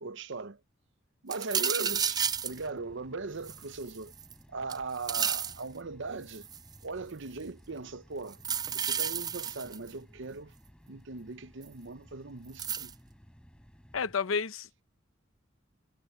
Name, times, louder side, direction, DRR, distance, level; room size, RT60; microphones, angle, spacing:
voice 1, 0.0-0.6 1.2-4.1 4.5-6.5 6.8-8.4 8.7-10.5 10.9-12.9, right 3 dB, 65° right, 0.9 m, -39 dB
Coins Dropping in Glass Jar, 1.3-2.6 3.4-4.3 4.7-5.6 6.3-6.7 8.3-9.9 11.6-11.7 12.6-12.9, right 7 dB, 20° right, 0.4 m, -31 dB
sound 1, 1.8-14.1, equal, 5° left, 3.9 m, -57 dB
voice 2, 13.9-14.8, left 5 dB, 90° left, 0.9 m, -31 dB
head